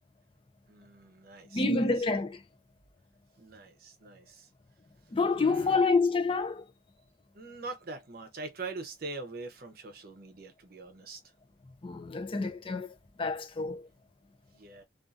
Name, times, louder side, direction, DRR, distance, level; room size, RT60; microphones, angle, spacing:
voice 1, 0.7-1.8 3.4-4.5 5.4-5.9 7.3-11.2 14.5-14.8, right 3 dB, 50° right, 0.7 m, -43 dB
voice 2, 1.5-2.4 5.1-6.7 11.8-12.9 13.2-13.9, left 3 dB, 30° left, 0.5 m, -28 dB
2.6 x 2.4 x 2.4 m
head